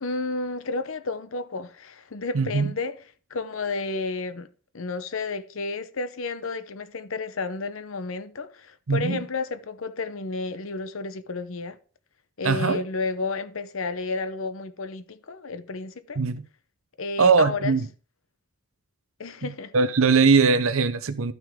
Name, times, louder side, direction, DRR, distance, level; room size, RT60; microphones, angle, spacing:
voice 1, 0.0-3.0 3.3-4.5 4.7-11.8 12.4-16.2 17.0-17.7 19.2-19.7, left 3 dB, 70° left, 0.8 m, -31 dB
voice 2, 2.3-2.7 8.9-9.2 12.4-12.8 16.2-16.4 17.2-17.9 19.4-19.5 19.7-21.3, right 4 dB, 70° right, 0.8 m, -20 dB
12.0 x 6.1 x 3.6 m
head